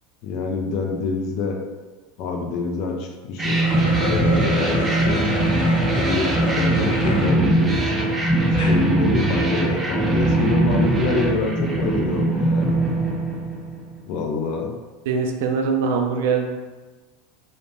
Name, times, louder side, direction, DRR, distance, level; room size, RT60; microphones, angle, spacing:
voice 1, 0.2-1.6 2.2-3.6 4.0-5.2 5.9-7.9 8.7-12.8 14.1-14.8, left 4 dB, 55° left, 2 dB, 0.4 m, -26 dB
sound 1, 3.4-7.3 7.8-7.9 8.4-8.8, equal, 90° left, 0.7 m, -29 dB
sound 2, 3.4-13.9, right 2 dB, 15° right, 0.4 m, -21 dB
voice 2, 15.1-16.5, right 5 dB, 75° right, 3 dB, 0.4 m, -22 dB
2.5 x 2.1 x 3.2 m, 1.3 s
supercardioid pair, 110°, 0 cm